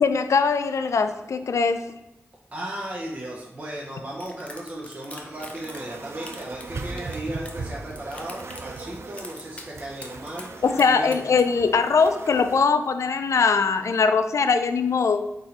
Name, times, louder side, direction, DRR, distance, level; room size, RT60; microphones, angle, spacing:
voice 1, 0.0-1.8 10.6-15.3, left 5 dB, 70° left, 9 dB, 0.3 m, -21 dB
voice 2, 2.5-11.2, right 1 dB, 30° right, -4 dB, 0.7 m, -36 dB
Pop can crinkle, 4.2-5.9 6.2-7.6 7.9-8.9 9.2-9.7 10.0-11.4, left 1 dB, 25° left, 0.6 m, -43 dB
sound 1, 5.3-12.6, right 3 dB, 55° right, 0.4 m, -38 dB
4.0 x 2.6 x 4.3 m, 0.96 s
wide cardioid pair, 75°, 5 cm